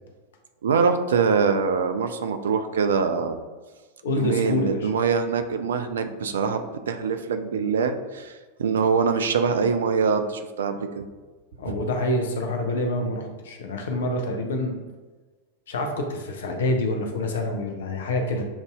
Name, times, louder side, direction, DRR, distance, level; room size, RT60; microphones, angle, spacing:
voice 1, 0.6-3.4 4.1-11.1 11.6-11.8, right 5 dB, 65° right, 8 dB, 0.4 m, -24 dB
voice 2, 4.0-4.9 11.6-14.8 15.7-18.4, left 1 dB, 60° left, 3 dB, 0.6 m, -27 dB
7.0 x 2.6 x 2.3 m, 1.3 s
figure-of-eight pair, 90°, 0 cm